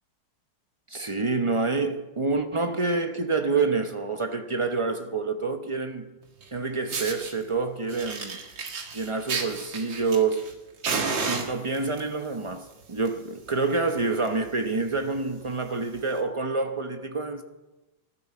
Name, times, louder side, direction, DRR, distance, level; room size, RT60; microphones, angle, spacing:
voice 1, 0.9-6.1 6.5-8.4 8.9-10.5 11.2-17.4, right 3 dB, 35° right, 0.5 m, -27 dB
Fire, 6.4-6.5 6.9-7.3 7.9-10.5 10.8-12.0 12.8-13.1 13.4-13.5 13.9-14.0 14.2-14.5 15.0-15.1 16.0-16.1, right 4 dB, 75° right, 2.4 m, -31 dB
19.0 x 12.0 x 4.4 m
omnidirectional pair, 2.1 m